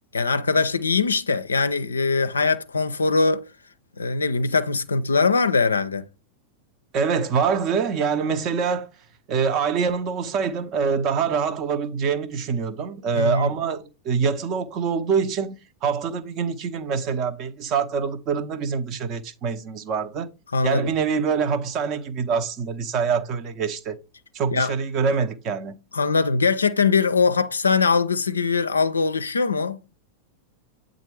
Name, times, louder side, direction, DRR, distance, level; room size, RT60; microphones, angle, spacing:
voice 1, 0.1-3.4 4.0-6.1 13.1-13.5 20.5-20.9 24.5-24.7 25.9-29.8, left 4 dB, 75° left, 0.4 m, -21 dB
voice 2, 6.9-8.9 9.3-20.3 20.6-24.0 24.3-25.8, right 6 dB, 35° right, 0.6 m, -25 dB
8.2 x 3.7 x 3.2 m
figure-of-eight pair, 90°, 0 cm